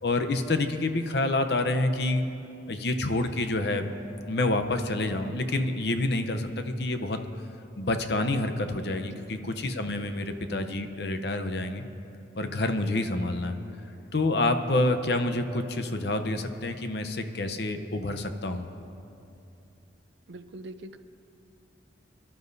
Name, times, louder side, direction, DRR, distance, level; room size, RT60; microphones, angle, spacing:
voice 1, 0.0-2.2 2.7-3.9 4.3-7.2 7.8-11.8 12.4-13.6 14.1-18.7, left 2 dB, 60° left, 7 dB, 0.7 m, -28 dB
voice 2, 9.0-9.3 20.3-21.0, right 2 dB, 75° right, 11 dB, 0.5 m, -44 dB
23.0 x 12.0 x 2.7 m, 2.7 s
head